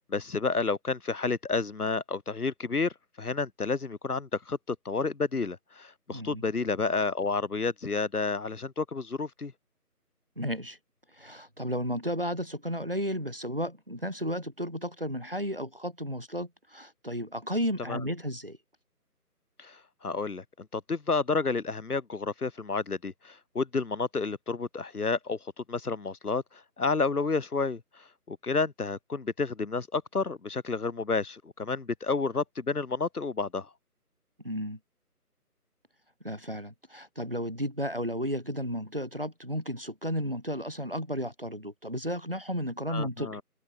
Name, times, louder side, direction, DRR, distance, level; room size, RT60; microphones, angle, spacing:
voice 1, 0.1-9.5 17.9-18.0 19.6-33.7 42.9-43.4, left 4 dB, 70° left, 1.3 m, -30 dB
voice 2, 6.1-6.4 10.4-10.8 11.2-18.6 34.4-34.8 36.2-43.4, equal, 40° right, 0.5 m, -33 dB
figure-of-eight pair, 160°, 47 cm